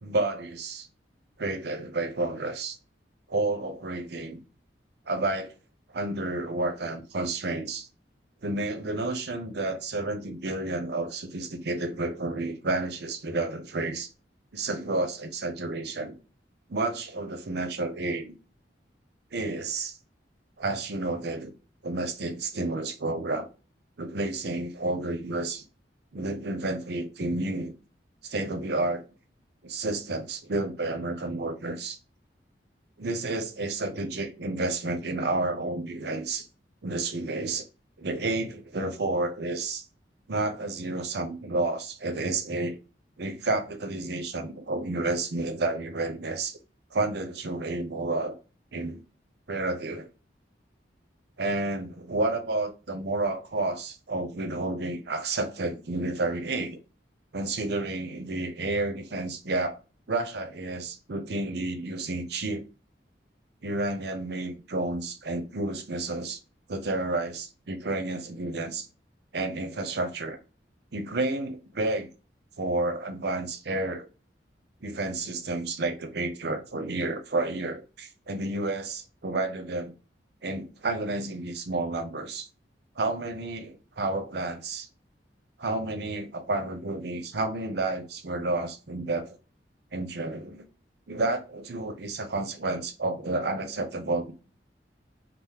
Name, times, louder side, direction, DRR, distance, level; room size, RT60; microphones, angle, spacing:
voice 1, 0.0-0.9 1.4-2.8 3.3-4.4 5.1-5.5 5.9-7.9 8.4-14.1 14.5-16.1 16.7-18.3 19.3-20.0 20.6-21.5 21.8-23.5 24.0-25.6 26.1-27.7 28.2-29.0 29.6-32.0 33.0-36.5 36.8-37.6 38.0-39.8 40.3-42.7 43.2-46.6 46.9-48.4 48.7-49.0 49.5-50.1 51.4-56.8 57.3-59.8 60.1-62.6 63.6-66.4 66.7-68.9 69.3-70.4 70.9-72.1 72.6-74.1 74.8-79.9 80.4-82.5 83.0-84.9 85.6-89.4 89.9-90.6 91.1-94.3, right 2 dB, 65° right, 0.7 m, -30 dB
3.4 x 2.0 x 2.8 m
head